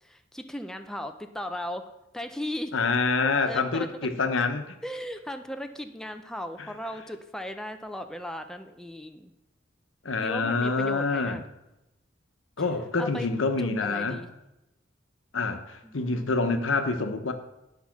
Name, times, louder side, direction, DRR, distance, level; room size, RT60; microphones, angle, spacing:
voice 1, 0.0-2.7 3.5-3.9 4.8-9.3 10.2-11.4 13.0-13.3 13.6-14.3 15.8-16.6, left 1 dB, 5° left, 6 dB, 0.5 m, -37 dB
voice 2, 2.7-4.7 10.0-11.4 12.6-14.2 15.3-17.3, left 4 dB, 85° left, 7 dB, 1.0 m, -26 dB
10.5 x 5.6 x 5.9 m, 0.93 s
head